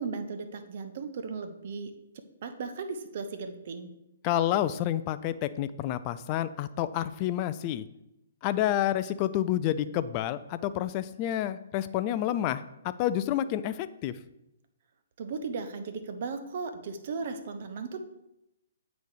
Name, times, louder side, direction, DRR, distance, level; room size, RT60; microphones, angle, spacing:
voice 1, 0.0-3.9 15.2-18.0, right 4 dB, 50° right, 9 dB, 0.8 m, -36 dB
voice 2, 4.2-7.9 8.4-14.2, left 12 dB, 30° left, 14 dB, 0.3 m, -29 dB
8.2 x 4.0 x 4.8 m, 0.88 s
figure-of-eight pair, 125°, 0 cm